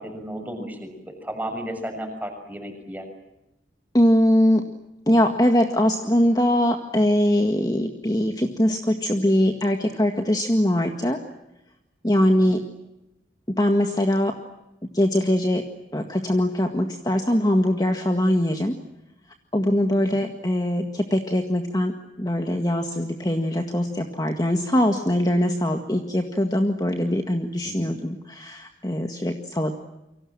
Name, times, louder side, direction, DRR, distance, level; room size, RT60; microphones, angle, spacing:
voice 1, 0.0-3.1 19.9-20.2 27.6-27.9, equal, 10° right, 5 dB, 6.6 m, -34 dB
voice 2, 3.9-4.6 5.1-11.2 12.0-12.6 13.6-14.4 14.9-15.6 15.9-18.8 19.5-29.7, left 1 dB, 20° left, 4 dB, 1.9 m, -22 dB
29.5 x 25.0 x 7.5 m, 0.91 s
head